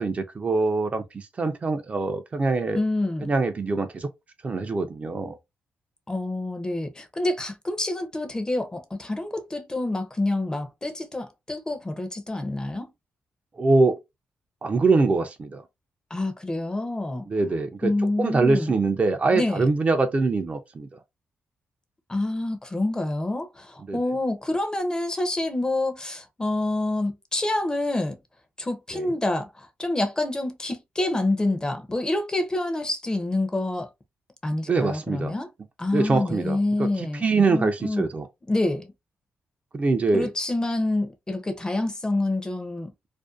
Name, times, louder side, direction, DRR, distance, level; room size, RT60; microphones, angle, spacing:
voice 1, 0.0-2.8 3.2-4.1 4.4-5.4 13.6-14.0 14.6-15.6 17.3-17.9 18.2-20.9 23.9-24.0 28.9-29.1 34.7-35.3 35.9-38.3 39.7-40.3, right 3 dB, 35° right, 0.4 m, -23 dB
voice 2, 2.7-3.3 6.1-12.9 16.1-17.3 17.8-18.7 19.3-19.7 22.1-28.2 28.6-33.9 34.4-35.5 35.8-38.1 38.5-38.9 40.1-42.9, left 2 dB, 20° left, 0.5 m, -27 dB
2.5 x 2.1 x 2.3 m
cardioid pair, 90°, 4 cm